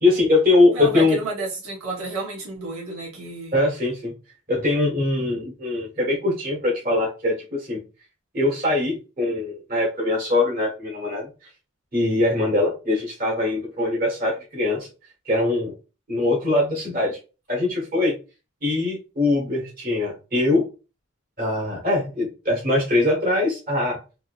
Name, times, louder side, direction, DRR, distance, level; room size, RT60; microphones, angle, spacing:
voice 1, 0.0-1.2 3.5-4.1 4.5-7.3 7.7-7.8 8.3-11.3 11.9-14.9 15.3-15.7 16.1-17.2 17.5-18.1 18.6-20.6 21.4-24.0, left 2 dB, 40° right, 1.3 m, -22 dB
voice 2, 0.7-3.6, right 2 dB, 75° right, 1.2 m, -31 dB
3.6 x 2.7 x 2.4 m
head